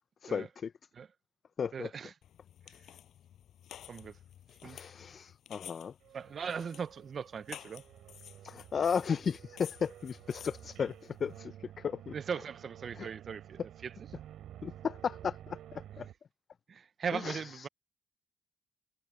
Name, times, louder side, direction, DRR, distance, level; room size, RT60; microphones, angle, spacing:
voice 1, 0.2-0.7 1.6-1.9 4.6-6.0 8.4-12.1 12.9-13.1 14.6-16.1 17.1-17.7, left 6 dB, 50° left, 0.5 m, -35 dB
voice 2, 1.7-2.1 3.9-4.2 4.6-4.9 6.1-7.8 12.1-13.9 16.7-17.7, right 6 dB, 50° right, 0.6 m, -39 dB
sound 1, 2.2-11.4, left 10 dB, 70° left, 6.5 m, -53 dB
sound 2, 6.0-16.1, right 11 dB, 75° right, 4.3 m, -52 dB
cardioid pair, 90°, 0 cm